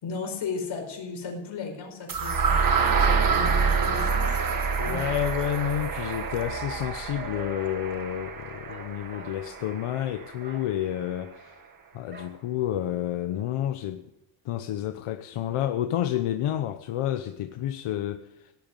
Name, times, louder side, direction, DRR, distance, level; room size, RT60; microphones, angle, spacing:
voice 1, 0.0-2.7 3.0-4.4 4.8-5.3, left 4 dB, 65° left, 5.1 m, -35 dB
sound 1, 2.1-10.0, right 5 dB, 40° right, 1.7 m, -27 dB
voice 2, 4.8-11.6 11.9-14.1 14.4-18.5, left 11 dB, 90° left, 1.0 m, -30 dB
Bark, 5.9-8.0 8.7-9.4 9.7-10.0 10.3-10.7 12.1-12.4 12.9-13.0 13.3-13.8, right 1 dB, 20° right, 2.8 m, -44 dB
17.0 x 9.2 x 9.0 m
wide cardioid pair, 160°, 50 cm